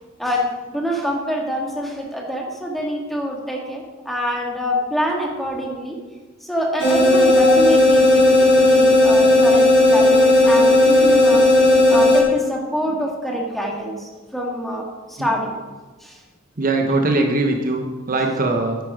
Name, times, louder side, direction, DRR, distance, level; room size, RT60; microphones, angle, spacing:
voice 1, 0.2-6.0 6.4-11.4 11.9-15.6 16.0-16.2 18.3-18.4, equal, ahead, -1 dB, 1.7 m, -25 dB
sound 1, 6.8-12.2, left 1 dB, 60° left, 4.3 m, -14 dB
voice 2, 16.6-18.8, right 2 dB, 45° right, 3 dB, 1.0 m, -20 dB
10.0 x 9.6 x 5.0 m, 1.3 s
head